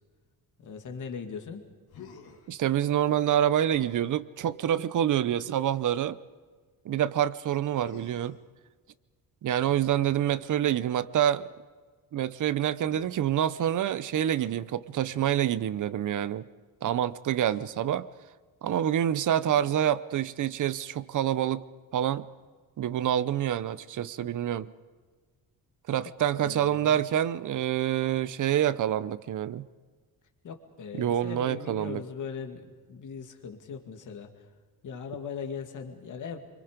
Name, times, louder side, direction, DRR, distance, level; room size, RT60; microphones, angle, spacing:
voice 1, 0.6-1.6 26.4-27.0 30.4-34.3 34.8-36.4, left 6 dB, 55° left, 2.4 m, -39 dB
Human voice, 1.9-2.5 3.7-4.1 5.4-6.1 7.8-8.5 9.6-10.8 12.8-13.1 15.1-15.4 17.3-17.9 19.5-20.0, left 7 dB, 85° left, 2.9 m, -51 dB
voice 2, 2.5-6.2 6.8-8.4 9.4-11.5 12.1-16.5 16.8-18.1 18.6-21.7 21.9-22.3 22.8-24.7 25.9-29.7 30.9-32.0, right 10 dB, 55° right, 0.8 m, -27 dB
26.5 x 24.5 x 5.2 m
cardioid pair, 160°, 37 cm